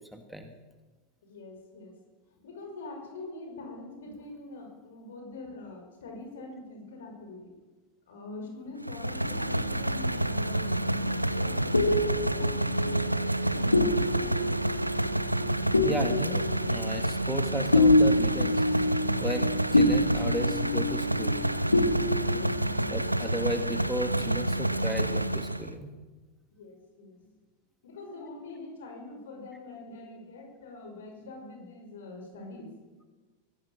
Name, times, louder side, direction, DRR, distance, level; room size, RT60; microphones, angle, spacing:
voice 1, 0.1-0.5 15.8-18.6 19.2-21.4 22.9-25.9, equal, ahead, 6 dB, 1.9 m, -35 dB
voice 2, 1.2-2.0 2.4-7.5 8.1-11.8 12.1-14.7 22.2-23.0 26.5-27.3 27.8-32.7, left 2 dB, 60° left, 4 dB, 5.8 m, -44 dB
sound 1, 8.8-25.7, right 1 dB, 85° right, 1.0 m, -29 dB
sound 2, 11.3-21.5 21.7-22.6, left 2 dB, 80° left, 2.2 m, -27 dB
23.0 x 16.5 x 7.4 m, 1.3 s
figure-of-eight pair, 90°, 0 cm